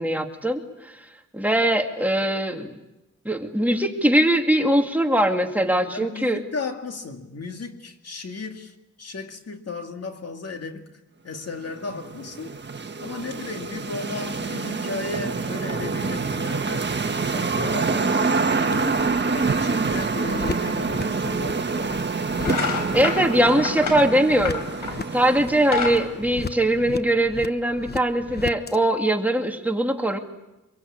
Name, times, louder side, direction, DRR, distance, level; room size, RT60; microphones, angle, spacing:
voice 1, 0.0-2.8 3.2-6.4 22.9-24.6 25.1-30.2, right 1 dB, 5° right, 2.5 m, -21 dB
voice 2, 5.9-11.0 11.2-12.6 13.0-16.9 17.3-22.1, left 3 dB, 50° left, 2.4 m, -35 dB
sound 1, 11.6-26.2, right 4 dB, 35° right, 1.5 m, -26 dB
sound 2, 17.1-28.8, left 5 dB, 30° left, 1.0 m, -38 dB
sound 3, 21.8-22.0 22.4-25.1 25.5-27.1, left 5 dB, 85° left, 4.7 m, -29 dB
26.0 x 22.5 x 8.8 m
wide cardioid pair, 100°, 31 cm